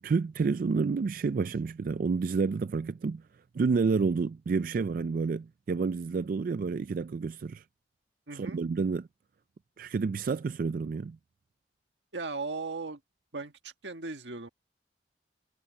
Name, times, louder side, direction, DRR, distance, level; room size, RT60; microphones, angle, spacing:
voice 1, 0.0-3.2 3.5-7.6 8.3-9.1 9.8-11.2, right 4 dB, 50° right, 0.3 m, -29 dB
voice 2, 8.3-8.6 12.1-13.0 13.3-14.5, right 3 dB, 90° right, 1.7 m, -37 dB
head